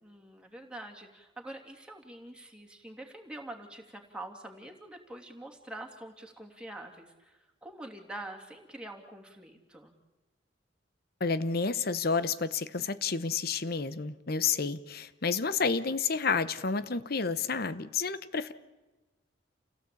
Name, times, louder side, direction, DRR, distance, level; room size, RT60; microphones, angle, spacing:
voice 1, 0.0-9.9, right 1 dB, 5° right, 1 dB, 2.8 m, -45 dB
voice 2, 11.2-18.5, left 5 dB, 55° left, 14 dB, 1.0 m, -30 dB
29.0 x 17.0 x 8.6 m, 1.1 s
head